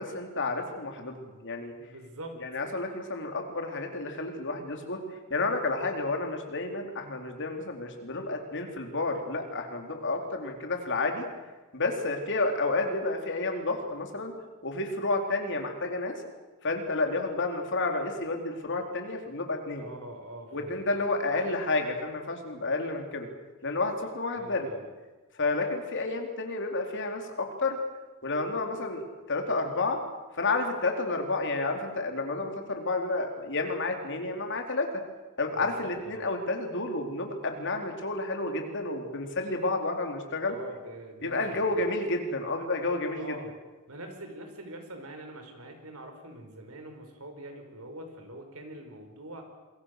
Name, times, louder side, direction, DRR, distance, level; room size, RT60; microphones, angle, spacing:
voice 1, 0.0-1.7 2.4-5.0 5.3-11.2 11.7-14.3 14.6-16.2 16.6-19.8 20.5-23.3 23.6-24.7 25.4-27.8 28.2-29.0 29.3-30.0 30.3-34.9 35.4-40.6 41.2-43.3, left 3 dB, 55° left, 3 dB, 3.9 m, -30 dB
voice 2, 1.8-2.4 19.7-21.2 24.3-24.9 35.5-36.2 40.4-41.8 43.1-43.5 43.9-49.5, right 1 dB, 70° right, 5 dB, 5.2 m, -44 dB
27.5 x 22.5 x 6.7 m, 1.3 s
head